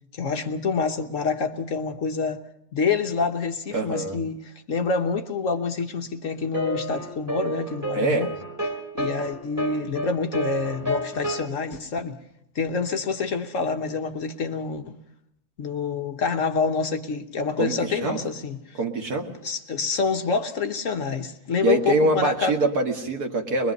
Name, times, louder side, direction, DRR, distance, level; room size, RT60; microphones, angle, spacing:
voice 1, 0.1-2.4 2.7-8.3 8.9-12.2 12.5-14.9 15.6-18.8 19.4-22.8, left 5 dB, 55° left, 1.3 m, -27 dB
voice 2, 3.7-4.2 7.9-8.3 17.6-18.2 18.8-19.3 21.6-23.7, right 2 dB, 65° right, 2.4 m, -24 dB
sound 1, 6.5-11.5, equal, 10° right, 2.8 m, -30 dB
23.0 x 22.0 x 5.4 m
omnidirectional pair, 1.7 m